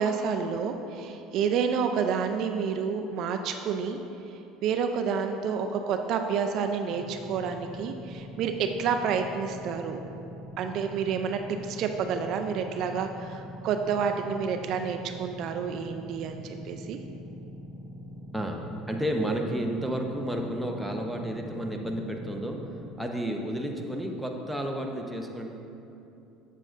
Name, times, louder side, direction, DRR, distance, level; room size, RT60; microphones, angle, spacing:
voice 1, 0.0-4.0 4.3-4.4 4.6-10.0 10.6-17.0, right 6 dB, 55° right, 6 dB, 0.4 m, -29 dB
sound 1, 6.9-22.9, equal, 80° right, 0.8 m, -43 dB
voice 2, 18.3-22.6 23.0-25.5, right 1 dB, ahead, 1 dB, 0.7 m, -31 dB
7.6 x 7.4 x 2.5 m, 2.8 s
supercardioid pair, 115°, 0 cm